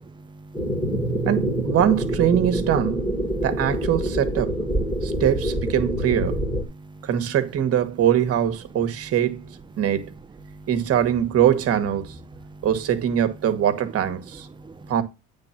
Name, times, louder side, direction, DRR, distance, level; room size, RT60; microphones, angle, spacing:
voice 1, 0.1-1.3 3.3-3.4 4.9-5.2 6.7-7.1 10.5-10.7 12.4-12.7 14.5-14.9, right 2 dB, 15° right, 0.5 m, -45 dB
sound 1, 0.5-6.6, right 1 dB, 10° left, 1.8 m, -26 dB
voice 2, 1.2-3.0 3.4-4.5 5.0-6.4 7.0-9.5 9.8-10.1 10.7-12.2 12.6-14.5 14.9-15.0, right 10 dB, 50° right, 1.4 m, -22 dB
8.9 x 3.6 x 5.8 m
cardioid pair, 135°, 31 cm